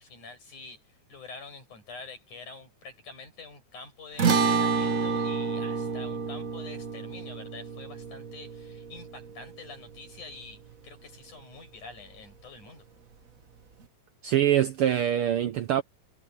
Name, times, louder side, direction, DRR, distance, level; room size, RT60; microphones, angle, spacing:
voice 1, 0.0-12.8, left 4 dB, 80° left, 9.5 m, -46 dB
sound 1, 4.2-10.7, right 5 dB, 50° right, 1.0 m, -29 dB
voice 2, 14.2-15.8, right 11 dB, 80° right, 1.2 m, -24 dB
omnidirectional pair, 3.5 m